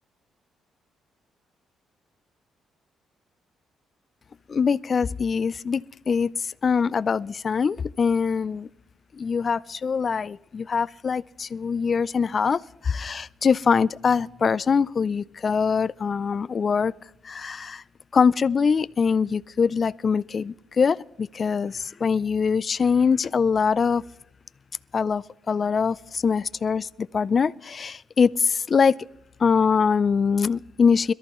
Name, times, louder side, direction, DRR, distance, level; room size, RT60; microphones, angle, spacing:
voice 1, 4.5-5.8 6.1-8.7 9.1-16.9 17.2-17.8 18.1-24.0 24.9-29.0 29.4-31.1, left 5 dB, 40° left, 0.4 m, -23 dB
22.0 x 13.5 x 3.1 m
cardioid pair, 90°, 0 cm